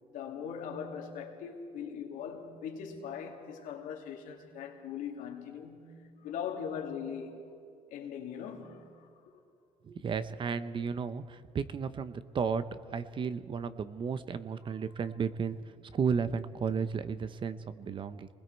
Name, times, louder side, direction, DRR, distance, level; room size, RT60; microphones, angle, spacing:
voice 1, 0.1-7.5 7.9-9.3, left 7 dB, 85° left, 2.4 m, -40 dB
voice 2, 9.9-12.6 12.9-15.6 15.9-18.3, right 6 dB, 40° right, 0.8 m, -33 dB
27.5 x 20.5 x 4.6 m
cardioid pair, 125°, 13 cm